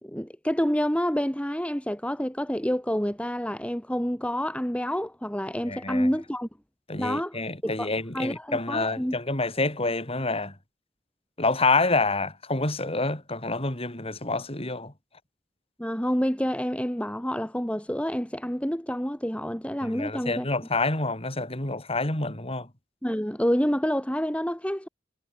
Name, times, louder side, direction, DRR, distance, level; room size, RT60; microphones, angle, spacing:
voice 1, 0.0-6.5 7.0-7.4 7.6-9.2 15.8-20.5 23.0-24.9, equal, 5° left, 2.8 m, -28 dB
voice 2, 5.7-6.1 6.9-10.5 11.4-14.9 19.8-22.7, left 3 dB, 30° left, 4.7 m, -27 dB
head